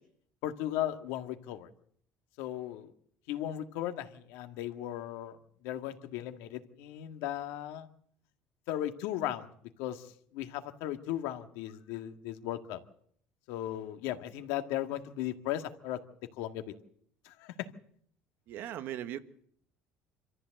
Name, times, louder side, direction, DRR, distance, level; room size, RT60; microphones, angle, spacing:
voice 1, 0.4-1.7 2.4-2.9 3.3-5.4 5.6-7.9 8.7-9.5 9.8-10.0 10.3-12.8 13.5-16.0 16.4-16.7 17.3-17.5, left 12 dB, 80° left, 1.9 m, -36 dB
voice 2, 18.5-19.2, right 11 dB, 50° right, 1.3 m, -38 dB
26.5 x 14.0 x 7.7 m
cardioid pair, 165°, 5 cm